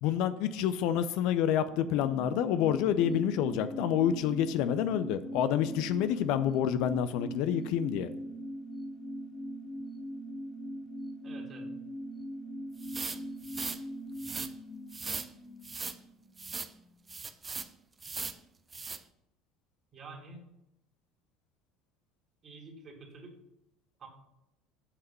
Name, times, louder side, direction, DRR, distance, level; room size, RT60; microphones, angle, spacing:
voice 1, 0.0-8.1, left 9 dB, 60° left, 12 dB, 0.5 m, -28 dB
sound 1, 1.6-16.7 16.9-17.0, equal, 10° left, 1.2 m, -41 dB
voice 2, 11.2-11.7 19.9-20.5 22.4-23.4 24.0-24.1, right 3 dB, 40° right, 0 dB, 2.6 m, -48 dB
sound 2, 12.8-13.8 14.2-14.5 14.9-15.3 15.6-16.0 16.4-16.7 17.1-17.7 18.0-18.4 18.7-19.0, right 4 dB, 25° right, 0.6 m, -38 dB
8.0 x 5.7 x 5.6 m, 0.86 s
hypercardioid pair, 70°, 0 cm